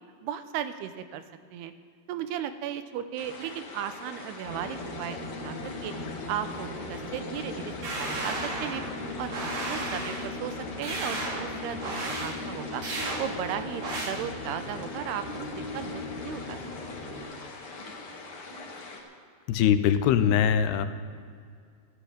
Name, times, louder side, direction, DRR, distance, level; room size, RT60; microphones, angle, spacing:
voice 1, 0.2-1.2 1.5-1.7 2.1-5.9 6.3-8.8 9.2-12.8 13.2-16.6 17.0-17.1, right 9 dB, 85° right, 11 dB, 2.7 m, -36 dB
sound 1, 3.2-19.0, left 3 dB, 45° left, 2.0 m, -43 dB
sound 2, 4.4-17.2, left 2 dB, 65° left, 4.6 m, -38 dB
sound 3, 7.8-8.9 9.3-10.3 10.8-11.5 11.8-12.3 12.8-13.2 13.8-14.1, right 2 dB, 55° right, 3.7 m, -33 dB
voice 2, 19.5-20.9, left 9 dB, 80° left, 10 dB, 2.7 m, -22 dB
14.0 x 9.9 x 8.6 m, 2.2 s
omnidirectional pair, 4.7 m